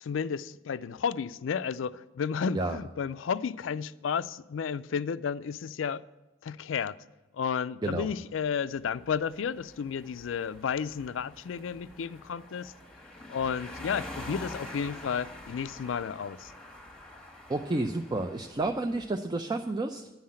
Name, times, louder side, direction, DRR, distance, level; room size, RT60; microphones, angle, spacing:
voice 1, 0.0-6.0 6.4-7.0 7.3-12.7 13.3-16.5, left 6 dB, 70° left, 0.4 m, -32 dB
voice 2, 7.8-8.1 17.5-20.1, right 2 dB, 20° right, 0.5 m, -30 dB
sound 1, 8.8-19.1, left 1 dB, 5° left, 1.3 m, -46 dB
10.5 x 5.7 x 8.7 m
head